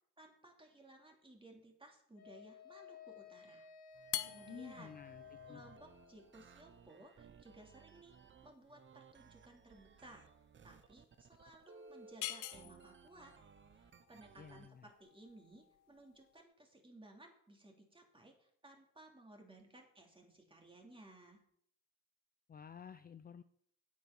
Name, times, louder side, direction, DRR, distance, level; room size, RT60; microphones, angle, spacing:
voice 1, 0.2-3.7 4.2-5.0 5.5-10.3 10.6-13.4 13.7-21.4, right 1 dB, 15° right, 2 dB, 2.9 m, -59 dB
Wind instrument woodwind instrument, 2.2-6.3, left 6 dB, 60° left, 2.6 m, -56 dB
sound 1, 3.9-14.7, right 5 dB, 40° right, 0.9 m, -61 dB
sound 2, 4.0-16.4, left 14 dB, 90° left, 0.8 m, -49 dB
voice 2, 4.5-5.6 14.4-14.9 22.5-23.4, left 7 dB, 30° left, 11 dB, 0.5 m, -52 dB
9.2 x 8.4 x 6.0 m, 0.68 s
cardioid pair, 90°, 30 cm